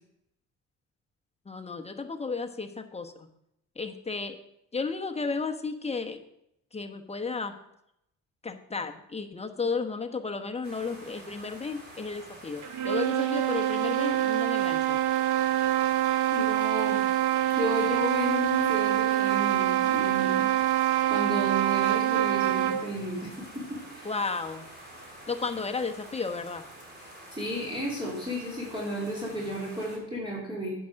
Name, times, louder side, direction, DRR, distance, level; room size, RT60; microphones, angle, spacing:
voice 1, 1.5-3.3 3.8-4.4 4.7-6.2 6.7-7.5 8.4-15.0 24.0-24.7 25.3-26.6, left 4 dB, 20° left, 5 dB, 1.1 m, -33 dB
sound 1, 10.6-30.0, right 1 dB, 35° right, 3.4 m, -47 dB
sound 2, 12.6-22.9, right 12 dB, 80° right, 0.9 m, -25 dB
voice 2, 16.3-17.0 17.5-20.5 21.1-24.1 27.3-30.7, equal, 15° right, -5 dB, 3.6 m, -33 dB
9.3 x 5.9 x 6.3 m, 0.79 s
cardioid pair, 90°, 30 cm